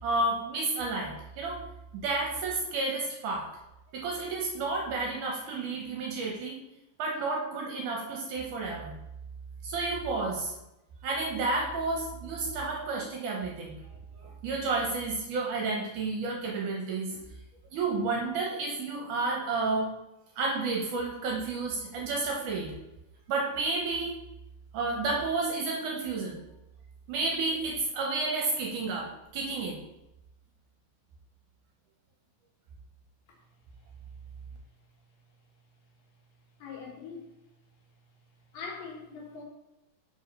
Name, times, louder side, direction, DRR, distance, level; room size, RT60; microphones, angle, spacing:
voice 1, 0.0-1.6 1.9-3.5 3.9-6.6 7.0-8.9 9.6-10.5 11.0-13.7 14.2-17.2 17.7-19.9 20.4-22.7 23.3-24.1 24.7-26.4 27.1-29.8, right 3 dB, 70° right, -1 dB, 2.1 m, -31 dB
voice 2, 36.6-37.3 38.5-39.4, left 5 dB, 70° left, 0 dB, 2.8 m, -41 dB
5.2 x 4.8 x 5.2 m, 0.93 s
omnidirectional pair, 4.2 m